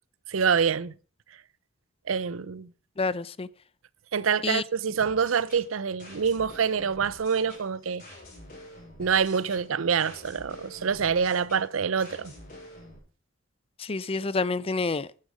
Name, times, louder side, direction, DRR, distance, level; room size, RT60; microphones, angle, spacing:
voice 1, 0.3-0.9 2.1-2.7 4.1-8.0 9.0-12.3, right 6 dB, 90° right, 0.6 m, -26 dB
voice 2, 3.0-3.5 4.4-4.6 13.8-15.1, left 3 dB, 30° left, 0.5 m, -28 dB
sound 1, 5.0-13.0, left 1 dB, 45° left, 7.0 m, -47 dB
13.0 x 9.8 x 5.1 m
head